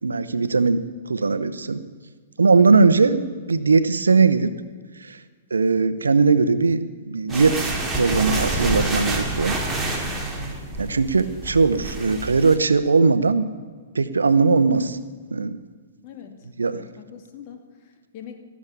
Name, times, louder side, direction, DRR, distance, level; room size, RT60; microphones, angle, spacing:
voice 1, 0.0-1.8 2.4-4.5 5.0-5.2 5.5-9.6 10.8-13.5 13.9-15.0 15.3-15.6 16.6-16.8, right 4 dB, 90° right, 13 dB, 0.8 m, -19 dB
sound 1, 7.3-12.6, right 2 dB, 10° right, 2.4 m, -27 dB
voice 2, 16.0-18.4, left 8 dB, 45° left, 5 dB, 2.2 m, -43 dB
16.5 x 7.4 x 8.2 m, 1.5 s
hypercardioid pair, 120°, 0 cm